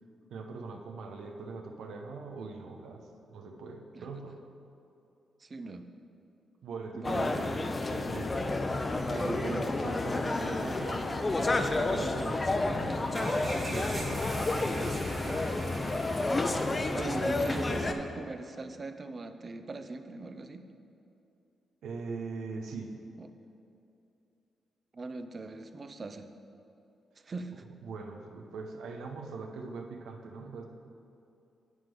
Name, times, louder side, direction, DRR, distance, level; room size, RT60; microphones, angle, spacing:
voice 1, 0.3-4.4 6.6-8.4 9.1-11.2 11.7-15.5 21.8-23.0 27.8-30.7, right 4 dB, 85° right, 3 dB, 0.8 m, -41 dB
voice 2, 5.4-5.9 6.9-7.3 16.9-20.6 23.2-23.3 24.9-26.3 27.2-27.6, right 3 dB, 40° right, 9 dB, 0.5 m, -40 dB
sound 1, 7.0-17.9, left 2 dB, 30° left, 0.6 m, -30 dB
sound 2, 13.1-17.8, right 1 dB, 25° right, 2.1 m, -43 dB
9.3 x 3.7 x 6.8 m, 2.7 s
cardioid pair, 80°, 0 cm